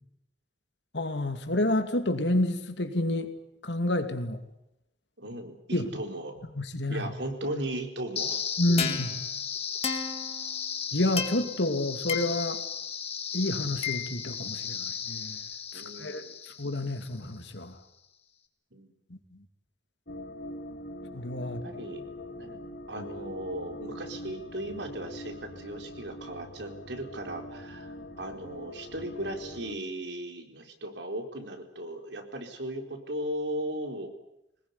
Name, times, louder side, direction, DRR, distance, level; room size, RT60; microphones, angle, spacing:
voice 1, 0.9-3.3 3.6-4.4 5.7-5.9 6.5-7.0 8.6-9.1 10.9-12.6 13.3-15.4 16.0-16.2 16.6-17.8 19.1-19.2 21.1-21.6 23.0-23.1, left 1 dB, 80° left, 7 dB, 2.6 m, -29 dB
voice 2, 5.2-6.4 6.9-8.4 8.7-8.9 15.7-16.4 18.7-18.9 21.6-22.6 22.9-34.1, right 1 dB, 80° right, 4 dB, 4.3 m, -37 dB
sound 1, 8.2-17.2, left 7 dB, 35° left, 2.2 m, -34 dB
sound 2, 20.1-29.8, left 1 dB, 65° left, 2.1 m, -43 dB
23.5 x 20.0 x 9.8 m, 0.87 s
head